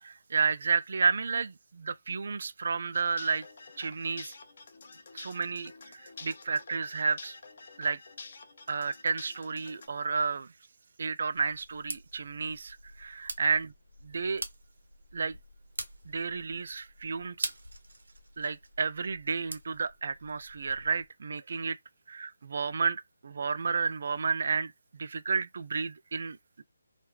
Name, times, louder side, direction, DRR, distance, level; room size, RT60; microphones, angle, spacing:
voice 1, 0.0-3.5 3.8-4.3 5.1-7.4 7.8-8.0 8.7-10.5 11.0-13.7 14.0-14.4 15.1-15.4 16.1-17.5 18.4-21.8 22.1-26.6, right 5 dB, 55° right, 0.3 m, -31 dB
sound 1, 2.9-9.9, left 4 dB, 50° left, 0.5 m, -49 dB
sound 2, 11.3-21.1, right 2 dB, 85° right, 0.8 m, -44 dB
3.0 x 2.3 x 3.1 m
figure-of-eight pair, 160°, 0 cm